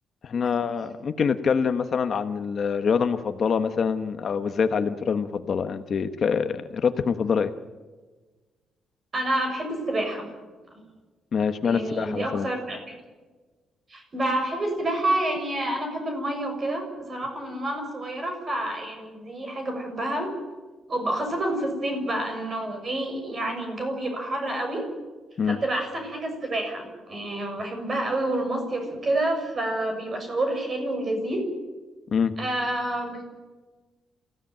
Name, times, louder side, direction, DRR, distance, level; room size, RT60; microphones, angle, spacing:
voice 1, 0.2-7.5 11.3-12.5 25.4-25.6 32.1-32.3, left 6 dB, 40° left, 9 dB, 1.1 m, -25 dB
voice 2, 9.1-10.3 10.7-10.8 11.6-12.8 13.9-20.3 20.9-24.8 25.4-31.4 32.4-33.2, right 1 dB, 30° right, 4 dB, 6.6 m, -28 dB
28.0 x 16.5 x 9.0 m, 1.3 s
cardioid pair, 170°, 0 cm